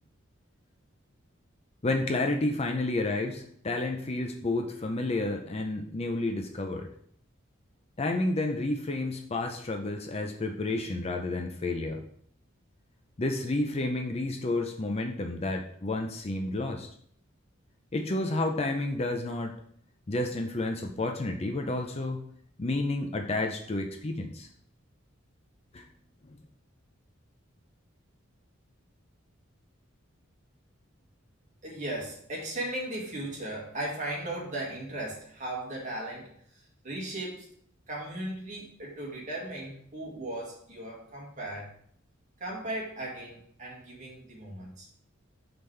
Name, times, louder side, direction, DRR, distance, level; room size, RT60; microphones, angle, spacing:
voice 1, 1.8-6.9 8.0-12.0 13.2-16.9 17.9-19.5 20.1-22.2 22.6-24.5 25.7-25.8, left 2 dB, 30° left, 4 dB, 0.5 m, -30 dB
voice 2, 31.6-37.5 37.9-41.7 42.4-44.9, right 1 dB, 40° right, -3 dB, 1.9 m, -37 dB
6.0 x 5.4 x 3.3 m, 0.63 s
head